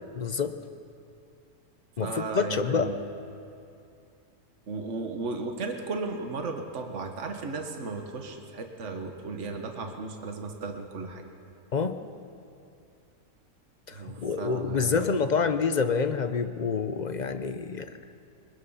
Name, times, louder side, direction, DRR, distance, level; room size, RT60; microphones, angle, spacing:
voice 1, 0.1-0.6 2.0-2.9 11.7-12.0 13.9-18.0, left 5 dB, 50° left, 9 dB, 0.5 m, -27 dB
voice 2, 2.0-3.0 4.7-11.2 13.9-15.1, right 3 dB, 50° right, 4 dB, 1.7 m, -35 dB
22.5 x 21.0 x 5.7 m, 2.6 s
omnidirectional pair, 1.6 m